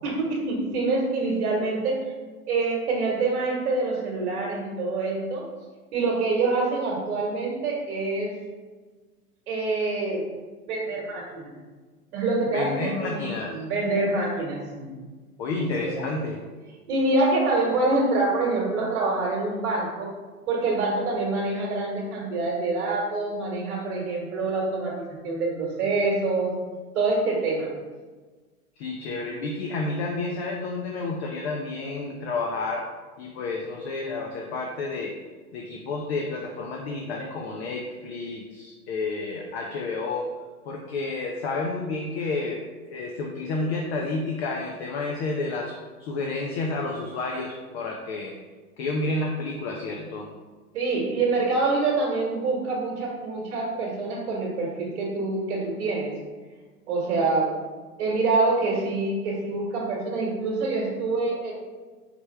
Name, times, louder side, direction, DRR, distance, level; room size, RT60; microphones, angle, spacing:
voice 1, 0.0-2.0 2.5-5.5 5.9-8.3 9.5-10.2 10.7-11.6 12.1-14.9 15.6-16.1 16.9-20.1 20.5-26.6 26.9-27.7 50.7-56.1 56.9-57.5 58.0-61.5, right 3 dB, 50° right, -4 dB, 1.3 m, -26 dB
voice 2, 12.5-13.5 15.4-16.4 28.8-32.9 33.2-35.2 35.5-40.3 40.7-48.3 48.8-50.3, left 3 dB, 45° left, 0 dB, 0.7 m, -30 dB
5.0 x 3.3 x 3.2 m, 1.4 s
figure-of-eight pair, 105°, 45 cm